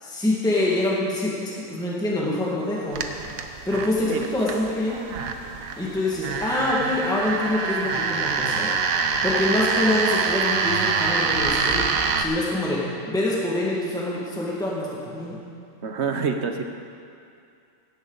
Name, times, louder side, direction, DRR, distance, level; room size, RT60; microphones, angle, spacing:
voice 1, 0.0-3.0 3.7-5.1 5.8-8.7 9.2-15.4, left 1 dB, 5° left, -5 dB, 1.8 m, -25 dB
sound 1, 2.9-12.2, right 5 dB, 80° right, 1.3 m, -25 dB
voice 2, 15.8-16.6, right 5 dB, 60° right, 5 dB, 1.1 m, -27 dB
17.0 x 11.0 x 4.0 m, 2.4 s
omnidirectional pair, 1.4 m